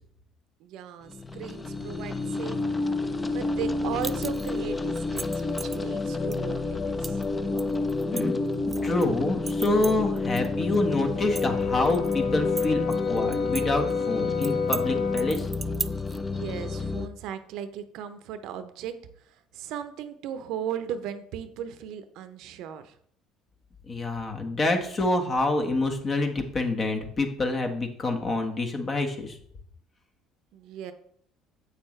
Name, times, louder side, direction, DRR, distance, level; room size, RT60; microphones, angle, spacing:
voice 1, 0.6-2.6 3.3-7.2 16.3-23.0 30.5-30.9, right 9 dB, 70° right, 11 dB, 0.7 m, -37 dB
sound 1, 1.1-17.1, left 3 dB, 20° left, 0.7 m, -30 dB
sound 2, 4.0-4.6 5.0-5.8 6.3-6.4 7.0-7.3 7.6-9.1 9.5-10.5 10.7-10.8 11.2-12.2 12.6-13.6 13.9-14.0 14.4-14.8 15.2-16.2, right 4 dB, 25° right, 0.4 m, -35 dB
voice 2, 8.8-12.8 13.1-15.5 23.9-29.4, left 2 dB, 35° left, 3 dB, 1.5 m, -27 dB
Brass instrument, 11.1-15.4, left 6 dB, 70° left, 0.7 m, -30 dB
8.1 x 6.6 x 3.2 m, 0.65 s
supercardioid pair, 75°, 0 cm